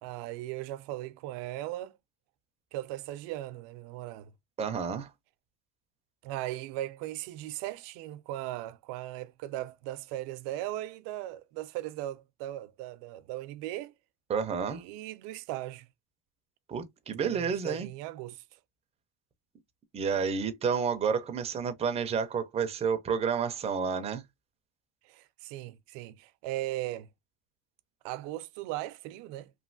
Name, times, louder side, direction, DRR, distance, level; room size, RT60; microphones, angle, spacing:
voice 1, 0.0-2.0 2.7-4.3 6.2-13.9 14.7-15.9 17.2-18.4 25.0-27.1 28.0-29.5, right 15 dB, 75° right, 0.5 m, -38 dB
voice 2, 4.6-5.1 14.3-14.8 16.7-17.9 19.9-24.2, right 6 dB, 15° right, 0.4 m, -30 dB
3.1 x 2.6 x 2.5 m
cardioid pair, 140°, 43 cm